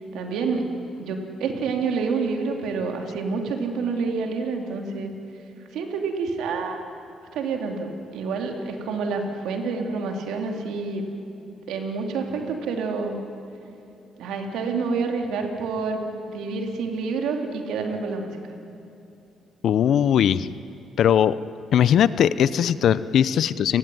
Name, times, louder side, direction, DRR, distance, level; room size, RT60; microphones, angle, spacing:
voice 1, 0.1-0.7 1.0-5.1 5.7-6.8 7.3-11.0 11.7-13.2 14.2-16.0 16.3-18.3, right 4 dB, 85° right, 3 dB, 3.5 m, -28 dB
voice 2, 19.6-20.5 21.0-21.4 21.7-23.8, left 9 dB, 70° left, 16 dB, 0.8 m, -19 dB
29.5 x 18.5 x 9.6 m, 2.9 s
cardioid pair, 90°, 0 cm